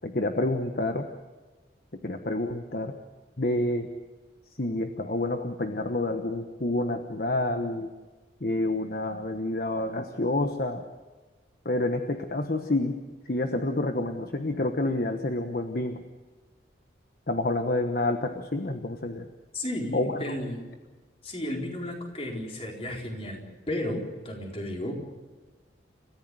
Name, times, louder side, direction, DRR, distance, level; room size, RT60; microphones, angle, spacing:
voice 1, 0.0-1.0 2.0-2.9 3.4-3.9 4.6-7.9 8.4-10.8 11.6-13.0 13.2-16.0 17.3-19.3 19.9-20.2, left 2 dB, 50° left, 6 dB, 1.2 m, -28 dB
voice 2, 19.5-20.6 21.2-25.0, left 1 dB, 30° left, 0 dB, 4.3 m, -33 dB
29.5 x 15.0 x 7.7 m, 1.3 s
head